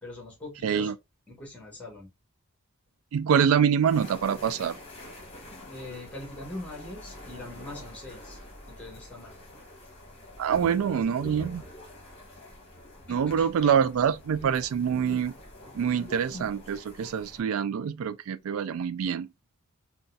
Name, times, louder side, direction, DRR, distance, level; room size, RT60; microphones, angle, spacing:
voice 1, 0.0-0.9 1.3-2.1 5.7-8.4 8.7-9.3 10.6-11.7 13.1-13.7 14.4-14.6, left 2 dB, 5° left, 1.2 m, -43 dB
voice 2, 0.6-0.9 3.1-4.8 10.4-11.6 13.1-15.3 15.7-19.3, right 7 dB, 70° right, 0.3 m, -25 dB
sound 1, 3.8-17.4, left 1 dB, 25° left, 1.1 m, -46 dB
3.8 x 2.3 x 2.5 m
head